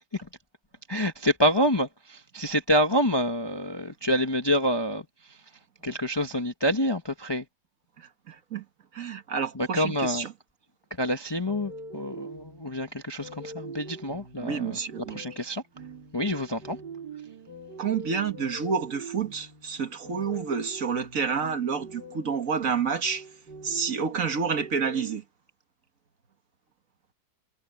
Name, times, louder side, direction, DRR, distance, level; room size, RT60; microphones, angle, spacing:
voice 1, 0.9-5.0 5.8-7.4 9.6-10.2 11.0-14.8 15.1-15.6 16.1-16.8, equal, 20° left, 0.9 m, -27 dB
voice 2, 8.0-8.6 8.9-10.3 14.4-15.2 17.8-23.3 23.6-25.2, right 6 dB, 50° right, 1.7 m, -29 dB
sound 1, 11.5-25.2, right 3 dB, 80° right, 4.8 m, -43 dB
omnidirectional pair, 1.8 m